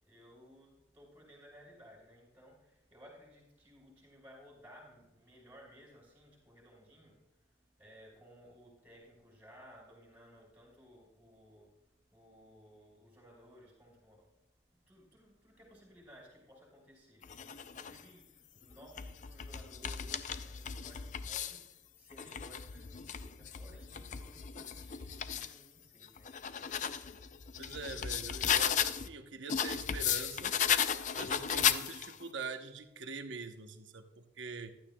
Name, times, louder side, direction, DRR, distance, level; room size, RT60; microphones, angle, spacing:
voice 1, 0.0-7.2 7.8-11.7 12.1-14.3 14.9-26.3, equal, 10° right, -4 dB, 4.7 m, -58 dB
sound 1, 17.2-18.0 18.7-21.6 22.1-25.5 26.0-29.1 29.5-32.2, left 8 dB, 40° left, 0.4 m, -35 dB
voice 2, 27.6-30.5 31.1-34.7, right 4 dB, 85° right, 6 dB, 0.9 m, -44 dB
15.0 x 12.0 x 2.3 m, 0.92 s
head